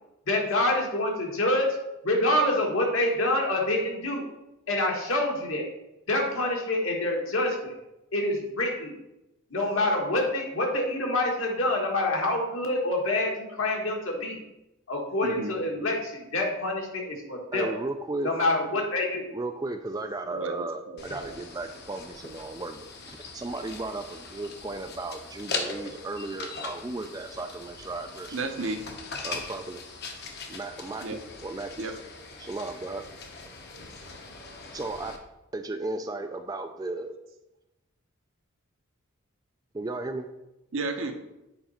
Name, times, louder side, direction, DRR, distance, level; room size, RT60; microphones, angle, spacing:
voice 1, 0.3-1.7 2.0-4.3 4.7-5.7 6.1-7.7 8.1-8.9 9.5-14.4 14.9-17.7 18.2-19.3, left 1 dB, 70° left, 0 dB, 1.7 m, -26 dB
voice 2, 15.2-15.5 20.3-20.7 20.9-21.4 28.3-28.8 31.0-31.2 31.8-31.9 40.7-41.1, right 3 dB, 65° right, 5 dB, 0.9 m, -32 dB
voice 3, 17.5-18.3 19.3-28.5 29.2-29.8 30.5-31.7 32.4-33.0 34.7-35.1 35.5-37.1 39.7-40.3, right 2 dB, 15° right, 7 dB, 0.3 m, -35 dB
sound 1, 21.0-35.2, left 4 dB, 50° left, 1.0 m, -40 dB
7.9 x 5.1 x 4.3 m, 0.93 s
head